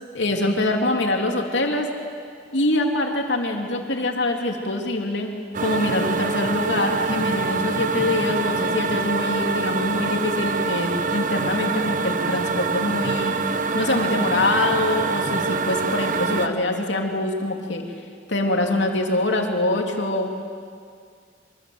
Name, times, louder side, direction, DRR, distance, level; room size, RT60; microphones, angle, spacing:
voice 1, 0.1-1.9 2.5-5.3 5.6-13.3 13.7-17.8 18.3-20.3, left 2 dB, 90° left, 2 dB, 3.0 m, -24 dB
sound 1, 5.5-16.5, right 4 dB, 45° right, 1.1 m, -25 dB
24.5 x 24.0 x 8.0 m, 2.1 s
head